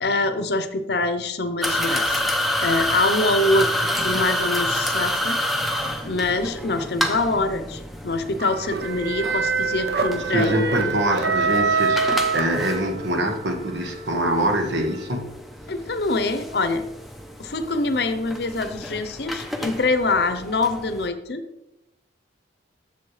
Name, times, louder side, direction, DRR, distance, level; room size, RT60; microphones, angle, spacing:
voice 1, 0.0-2.2 2.6-5.4 6.0-10.6 15.7-16.8 17.4-21.4, left 2 dB, 60° left, 9 dB, 0.7 m, -24 dB
sound 1, 1.6-21.1, left 1 dB, ahead, 0.6 m, -29 dB
sound 2, 8.4-13.2, right 4 dB, 60° right, 0.6 m, -24 dB
voice 2, 10.1-15.3, right 1 dB, 75° right, 4 dB, 1.3 m, -24 dB
Wind instrument woodwind instrument, 10.9-15.2, left 1 dB, 40° right, 1.6 m, -43 dB
7.6 x 7.0 x 3.2 m, 0.90 s
head